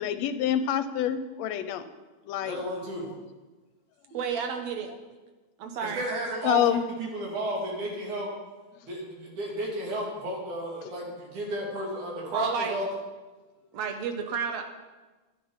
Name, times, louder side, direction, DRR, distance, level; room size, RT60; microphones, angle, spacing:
voice 1, 0.0-1.8 2.3-2.6 6.4-6.8, left 10 dB, 75° left, 11 dB, 1.8 m, -26 dB
voice 2, 2.4-3.1 5.8-8.3 8.8-12.9, right 1 dB, 90° right, -2 dB, 4.2 m, -33 dB
voice 3, 4.1-4.9 5.6-6.0 12.3-12.8 13.7-14.6, right 6 dB, 70° right, 5 dB, 2.4 m, -31 dB
12.5 x 10.0 x 5.6 m, 1.2 s
omnidirectional pair, 3.3 m